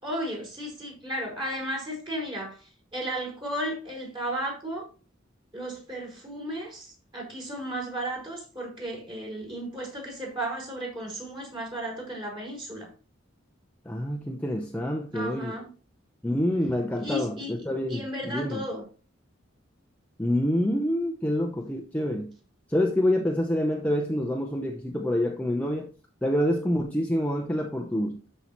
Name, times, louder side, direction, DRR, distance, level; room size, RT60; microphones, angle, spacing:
voice 1, 0.0-2.6 2.9-4.9 5.5-6.9 7.1-12.9 15.1-15.7 17.0-17.5 17.9-18.8, equal, 25° right, 5.2 m, -34 dB
voice 2, 13.8-15.6 16.2-18.6 20.2-22.3 22.7-25.9 26.2-28.2, left 1 dB, 10° left, 0.8 m, -27 dB
13.0 x 5.6 x 3.1 m
head